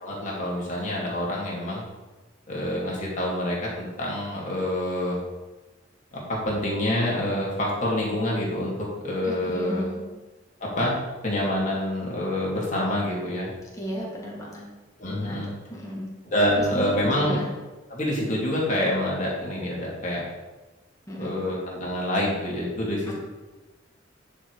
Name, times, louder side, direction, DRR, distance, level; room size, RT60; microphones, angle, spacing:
voice 1, 0.0-1.8 2.5-5.2 6.1-9.8 10.6-10.9 11.2-13.5 15.0-15.5 16.3-17.4 17.9-20.2 21.2-23.1, left 1 dB, 40° left, -4 dB, 2.6 m, -27 dB
voice 2, 9.2-10.0 13.8-14.6 15.2-15.4 15.7-16.1 16.5-17.5 21.1-21.4 23.1-23.2, equal, 15° left, -4 dB, 2.1 m, -34 dB
9.8 x 5.0 x 4.7 m, 1.2 s
head